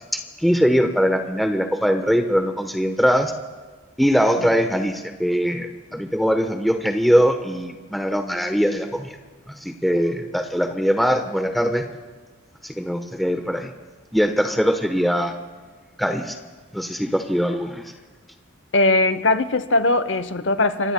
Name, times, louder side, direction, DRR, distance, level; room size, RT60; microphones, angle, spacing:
voice 1, 0.1-3.3 4.0-9.2 9.5-11.9 12.6-13.7 14.1-15.3 16.0-16.3 16.7-17.8, equal, ahead, 4 dB, 0.9 m, -21 dB
voice 2, 18.7-20.9, left 2 dB, 70° left, 12 dB, 0.8 m, -20 dB
28.0 x 23.0 x 2.2 m, 1.3 s
head